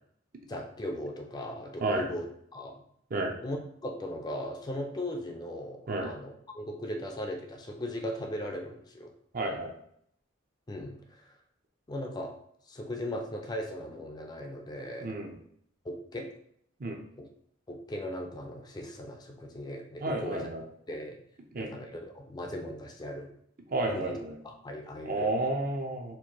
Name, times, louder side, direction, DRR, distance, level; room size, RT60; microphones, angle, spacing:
voice 1, 0.5-2.3 2.5-2.8 3.4-9.1 10.7-11.3 11.9-12.3 12.7-15.1 15.8-16.3 17.2-17.3 17.7-20.5 20.9-21.2 21.6-23.3 23.9-24.2 24.4-25.3, left 1 dB, 20° left, 3 dB, 0.4 m, -38 dB
voice 2, 9.3-9.7 15.0-15.3 16.8-17.0 20.0-20.6 21.5-21.7 23.7-24.4 25.0-26.2, right 2 dB, 45° right, 2 dB, 0.6 m, -31 dB
4.4 x 2.6 x 2.8 m, 0.67 s
head